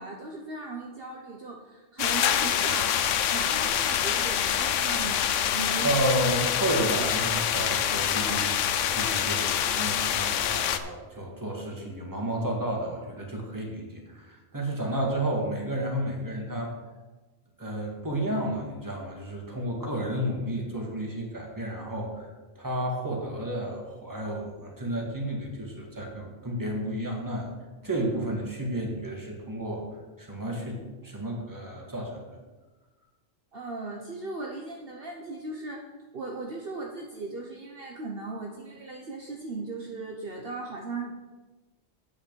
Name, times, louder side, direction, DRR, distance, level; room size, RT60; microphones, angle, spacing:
voice 1, 0.0-3.0 3.3-6.0 33.5-35.8 36.1-41.2, right 3 dB, 55° right, 0 dB, 1.1 m, -37 dB
sound 1, 2.0-10.8, left 9 dB, 85° left, 1.0 m, -26 dB
voice 2, 5.8-16.7 17.6-22.3 22.6-27.5 27.8-29.9 30.2-32.2, right 1 dB, 15° right, -1 dB, 1.9 m, -31 dB
8.2 x 6.3 x 6.9 m, 1.2 s
omnidirectional pair, 1.2 m